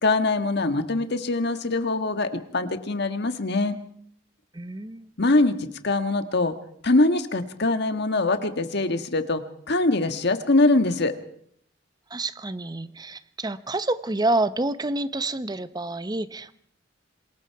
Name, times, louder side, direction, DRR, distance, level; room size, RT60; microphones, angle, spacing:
voice 1, 0.0-3.8 5.2-6.5 6.8-11.1, left 2 dB, 60° left, 9 dB, 1.6 m, -23 dB
voice 2, 4.5-5.1 12.1-16.5, right 2 dB, 20° right, 14 dB, 0.8 m, -28 dB
26.5 x 21.0 x 4.7 m, 0.65 s
head